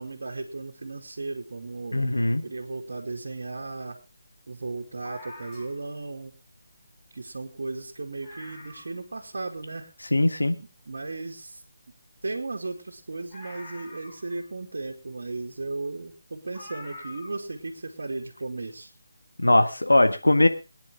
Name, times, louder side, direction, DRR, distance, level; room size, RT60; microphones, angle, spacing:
voice 1, 0.0-2.0 2.4-4.0 4.5-6.3 7.1-9.9 10.6-11.6 12.2-18.9, right 3 dB, 65° right, -1 dB, 2.4 m, -35 dB
voice 2, 1.9-2.4 10.1-10.6 19.4-20.5, left 1 dB, 85° left, 8 dB, 1.6 m, -20 dB
sound 1, 5.0-5.9 7.0-7.1 7.5-7.6 7.9-8.0 8.2-9.0 9.6-9.7 13.3-14.6 15.7-15.8 16.5-17.5 17.8-17.9, left 2 dB, 25° left, 6.0 m, -45 dB
23.0 x 10.0 x 3.7 m, 0.31 s
figure-of-eight pair, 155°, 0 cm